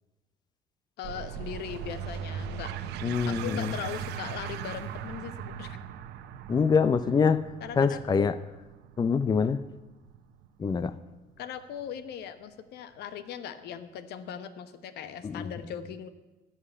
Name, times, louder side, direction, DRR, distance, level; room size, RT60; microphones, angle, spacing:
voice 1, 1.0-2.7 3.3-5.8 7.6-8.3 11.4-16.1, left 8 dB, 75° left, 12 dB, 1.1 m, -39 dB
sound 1, 1.0-12.1, right 8 dB, 85° right, 1.0 m, -39 dB
voice 2, 3.0-3.7 6.5-7.4 7.8-8.4 9.0-9.6 10.6-10.9 15.2-15.5, left 5 dB, 25° left, 14 dB, 0.5 m, -25 dB
14.5 x 5.7 x 9.7 m, 1.1 s
cardioid pair, 110°, 17 cm